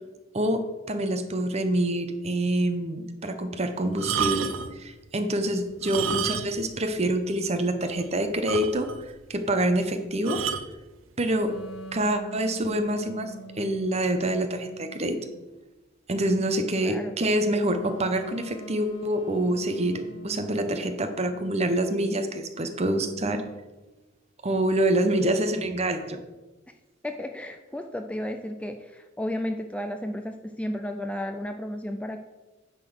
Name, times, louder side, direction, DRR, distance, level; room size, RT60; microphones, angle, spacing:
voice 1, 0.3-4.5 4.8-8.9 9.3-10.4 11.2-11.5 11.9-15.2 16.1-23.4 24.4-26.2, right 1 dB, 35° right, 8 dB, 0.8 m, -26 dB
sound 1, 3.9-4.8 5.7-6.7 7.0-7.1 7.6-7.7 8.0-8.1 8.5-9.1 10.3-10.7 11.6-11.8, right 7 dB, 80° right, 0.5 m, -30 dB
sound 2, 11.4-15.4 17.7-21.4, right 2 dB, 70° left, 1.0 m, -44 dB
voice 2, 16.8-17.1 27.0-32.2, left 1 dB, 5° left, 5 dB, 0.3 m, -33 dB
9.7 x 3.9 x 6.2 m, 1.1 s
head